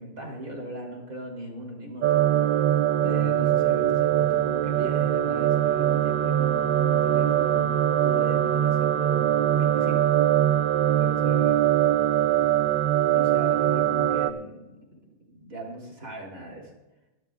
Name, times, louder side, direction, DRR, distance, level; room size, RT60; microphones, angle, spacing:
voice 1, 0.0-2.1 3.0-10.0 11.0-11.6 13.1-14.8 15.3-16.7, right 1 dB, 45° right, -1 dB, 3.8 m, -38 dB
sound 1, 2.0-14.3, right 11 dB, 85° right, 1.4 m, -22 dB
24.5 x 12.0 x 2.4 m, 1.0 s
omnidirectional pair, 2.0 m